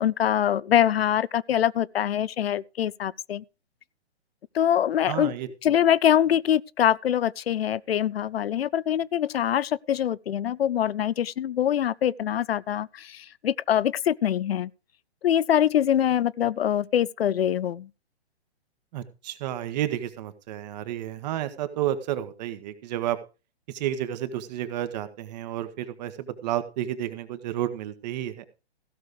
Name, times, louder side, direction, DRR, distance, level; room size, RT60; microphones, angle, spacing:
voice 1, 0.0-3.4 4.5-5.3 5.6-14.7 15.2-17.9, left 10 dB, 65° left, 0.6 m, -24 dB
voice 2, 5.1-5.5 18.9-23.2 23.7-28.4, right 12 dB, 40° right, 1.7 m, -31 dB
16.0 x 6.6 x 5.1 m
hypercardioid pair, 130°, 33 cm